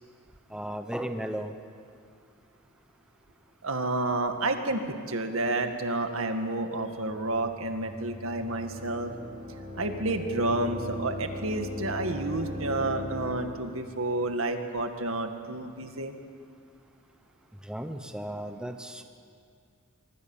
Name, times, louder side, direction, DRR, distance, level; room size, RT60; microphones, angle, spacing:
voice 1, 0.5-1.5 17.6-19.0, right 1 dB, 5° right, 6 dB, 1.0 m, -35 dB
voice 2, 3.6-9.1 9.8-16.1, right 2 dB, 75° right, 6 dB, 2.0 m, -30 dB
sound 1, 7.0-13.8, left 2 dB, 25° right, 3.3 m, -39 dB
25.5 x 23.5 x 7.3 m, 2.2 s
head